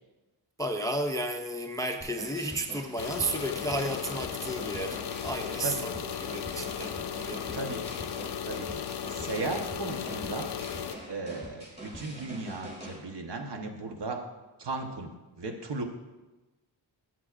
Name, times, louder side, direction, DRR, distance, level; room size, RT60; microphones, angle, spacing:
voice 1, 0.6-7.0 7.2-7.8, right 1 dB, 10° left, 5 dB, 0.4 m, -33 dB
sound 1, 2.0-13.0, equal, 15° right, 3.0 m, -44 dB
sound 2, 3.0-11.0, left 8 dB, 60° left, 0.5 m, -36 dB
voice 2, 7.5-8.0 8.4-10.5 11.0-14.2 14.6-15.1 15.4-15.8, right 3 dB, 65° right, 3 dB, 1.1 m, -36 dB
12.5 x 7.7 x 2.5 m, 1.1 s
wide cardioid pair, 135°, 45 cm